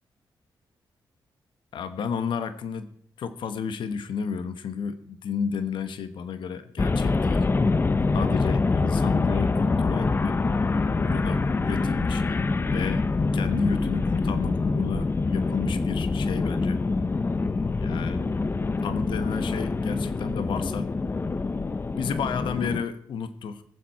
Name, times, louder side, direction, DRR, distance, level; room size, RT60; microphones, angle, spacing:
voice 1, 1.7-2.9 3.2-7.5 8.1-10.4 10.9-12.4 12.7-13.0 13.3-16.8 17.7-18.3 18.8-20.9 21.9-23.6, left 6 dB, 80° left, 10 dB, 1.2 m, -32 dB
sound 1, 6.8-22.8, left 3 dB, 25° left, 0.7 m, -25 dB
22.0 x 7.6 x 4.7 m, 0.64 s
cardioid pair, 110°, 8 cm